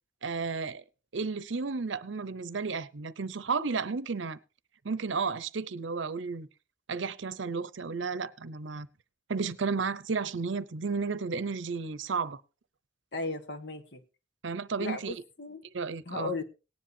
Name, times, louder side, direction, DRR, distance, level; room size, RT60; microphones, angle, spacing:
voice 1, 0.2-0.8 1.1-4.4 4.8-6.5 6.9-8.9 9.3-12.4 14.4-15.1 15.7-16.3, right 4 dB, 75° right, 0.7 m, -33 dB
voice 2, 13.1-14.0 14.8-15.6 16.1-16.4, left 2 dB, 60° left, 1.4 m, -36 dB
18.0 x 10.5 x 2.7 m
head